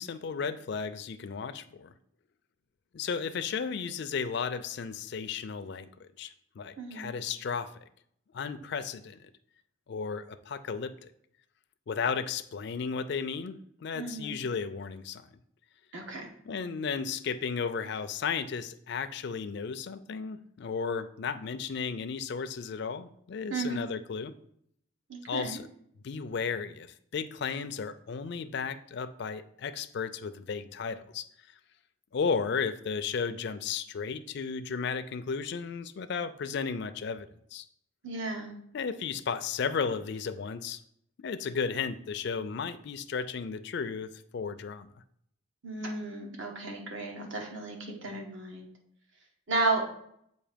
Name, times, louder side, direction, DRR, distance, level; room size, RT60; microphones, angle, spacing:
voice 1, 0.0-1.9 2.9-7.8 8.3-9.3 9.9-10.9 11.9-15.3 16.5-24.3 25.3-25.7 26.0-31.3 32.1-37.6 38.7-40.8 41.2-44.9, left 5 dB, 55° left, 11 dB, 0.4 m, -34 dB
voice 2, 6.8-7.1 13.9-14.4 15.9-16.3 23.5-23.8 25.1-25.6 38.0-38.5 45.6-48.7 49.5-49.9, right 3 dB, 65° right, 1 dB, 1.1 m, -33 dB
7.3 x 2.7 x 5.0 m, 0.69 s
head